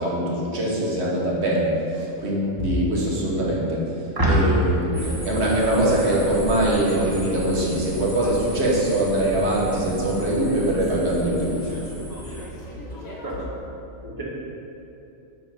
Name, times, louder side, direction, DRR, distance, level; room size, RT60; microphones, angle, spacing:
voice 1, 0.0-3.9 4.3-11.7, right 1 dB, 55° right, -4 dB, 1.4 m, -23 dB
voice 2, 4.2-4.6 13.2-13.4 14.0-14.2, right 1 dB, 15° right, -6 dB, 1.2 m, -22 dB
sound 1, 4.7-7.7 8.1-9.8 10.0-13.4, equal, 35° left, 0.8 m, -38 dB
sound 2, 4.9-12.5, equal, 30° right, 1.1 m, -34 dB
7.9 x 2.9 x 5.5 m, 2.8 s
omnidirectional pair, 1.4 m